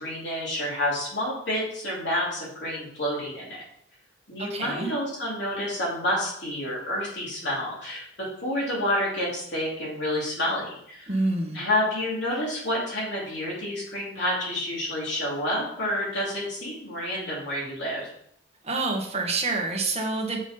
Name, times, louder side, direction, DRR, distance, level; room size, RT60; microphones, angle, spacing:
voice 1, 0.0-3.6 4.3-11.1 11.5-18.1, left 1 dB, 60° left, -5 dB, 3.8 m, -29 dB
voice 2, 4.4-4.9 11.1-11.6 18.6-20.4, right 3 dB, 30° right, 0 dB, 1.5 m, -27 dB
7.3 x 5.9 x 5.6 m, 0.70 s
head